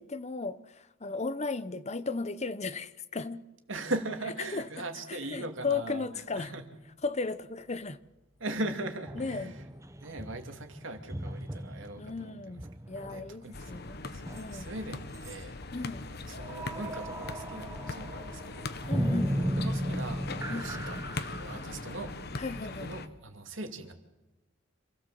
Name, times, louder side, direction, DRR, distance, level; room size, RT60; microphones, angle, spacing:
voice 1, 0.0-3.5 4.5-6.5 7.0-8.0 9.2-9.5 12.0-14.1 14.3-14.7 15.7-16.1 18.9-19.5 20.5-20.7 22.4-22.9, left 4 dB, 35° left, 0.9 m, -36 dB
voice 2, 3.7-6.1 6.3-6.6 8.4-9.6 10.0-12.3 13.1-15.5 16.3-18.7 19.2-22.2 22.6-23.9, right 2 dB, 80° right, 2.6 m, -39 dB
sound 1, 5.8-5.9 9.1-14.9 15.1-15.4 16.4-23.0, equal, 15° right, 0.9 m, -37 dB
sound 2, 13.5-23.1, left 3 dB, 55° left, 1.3 m, -40 dB
27.0 x 17.0 x 7.7 m
head